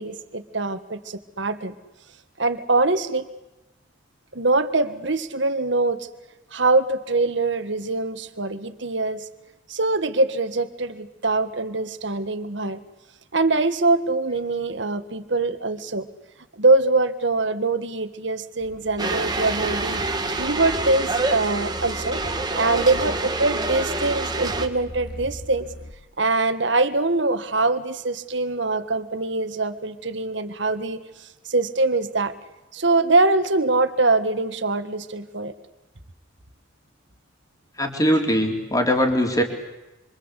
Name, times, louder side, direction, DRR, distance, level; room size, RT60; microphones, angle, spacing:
voice 1, 0.0-1.7 2.4-3.3 4.3-6.1 6.5-9.3 9.7-12.8 13.3-16.1 16.6-20.0 20.3-22.2 22.6-25.7 26.2-31.0 31.5-32.3 32.7-35.5, right 3 dB, 65° right, 10 dB, 1.7 m, -23 dB
sound 1, 18.6-25.9, equal, 50° left, 2.9 m, -38 dB
sound 2, 19.0-24.7, right 3 dB, 20° right, 1.8 m, -27 dB
voice 2, 37.8-39.4, equal, 15° left, 3 dB, 3.7 m, -21 dB
27.0 x 25.5 x 8.3 m, 0.99 s
head